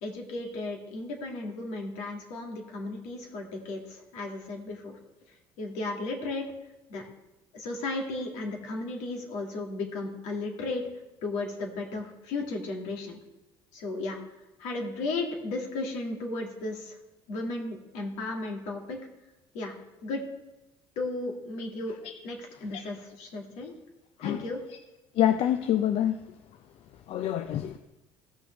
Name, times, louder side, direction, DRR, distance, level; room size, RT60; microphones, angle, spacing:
voice 1, 0.0-5.0 5.6-6.4 6.9-7.1 7.5-10.8 11.2-13.2 13.7-14.2 14.6-17.0 17.3-19.0 19.5-19.7 20.0-20.2 21.0-22.0 22.2-23.7 24.2-24.6, left 2 dB, 70° left, 1 dB, 2.0 m, -34 dB
voice 2, 25.2-26.2 27.1-27.8, left 11 dB, 55° left, 9 dB, 0.5 m, -26 dB
15.5 x 6.1 x 3.3 m, 1.0 s
hypercardioid pair, 75°, 12 cm